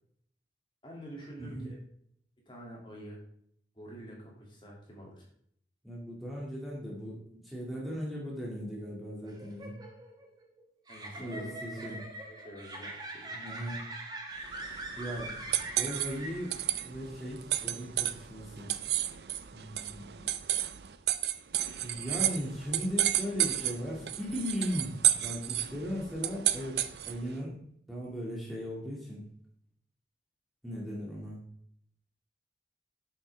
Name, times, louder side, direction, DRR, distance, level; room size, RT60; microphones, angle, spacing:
voice 1, 0.8-1.8 2.5-3.2 3.7-5.3 10.9-13.4, right 1 dB, 25° left, -2 dB, 2.6 m, -47 dB
voice 2, 1.4-1.7 5.8-9.8 11.1-12.0 13.3-13.9 15.0-16.5 16.8-18.7 19.5-20.3 21.8-27.6 27.9-29.2 30.6-31.4, equal, ahead, -5 dB, 2.3 m, -38 dB
sound 1, 9.2-16.8, right 2 dB, 25° right, 1.3 m, -43 dB
sound 2, 14.4-27.3, right 12 dB, 70° right, 0.6 m, -32 dB
9.2 x 8.0 x 3.5 m, 0.66 s
head